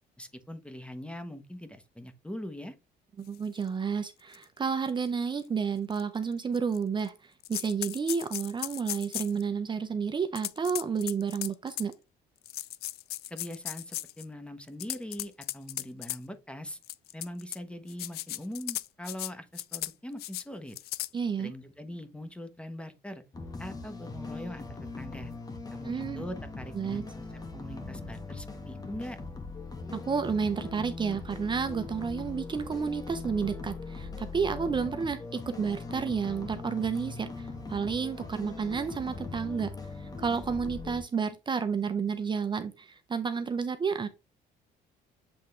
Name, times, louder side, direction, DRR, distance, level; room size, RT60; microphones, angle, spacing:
voice 1, 0.2-2.7 13.3-16.8 17.1-20.8 21.4-23.2 23.6-24.7 25.0-25.3 25.7-29.2, left 1 dB, 5° left, 1.0 m, -42 dB
voice 2, 3.2-11.9 21.1-21.5 25.8-26.2 26.7-27.0 29.9-39.7 40.0-44.1, right 6 dB, 25° right, 0.7 m, -31 dB
sound 1, 3.6-3.7 4.3-4.4 4.9-5.0 5.9-6.0 6.5-7.1 7.4-9.4 10.3-11.9 12.4-14.2 14.7-16.2 16.8-17.6 17.9-19.3 19.5-19.9 20.2-20.4 20.7-21.1, left 15 dB, 70° left, 0.4 m, -36 dB
sound 2, 23.3-41.0, left 3 dB, 20° left, 1.6 m, -40 dB
7.8 x 3.6 x 3.3 m
cardioid pair, 110°, 17 cm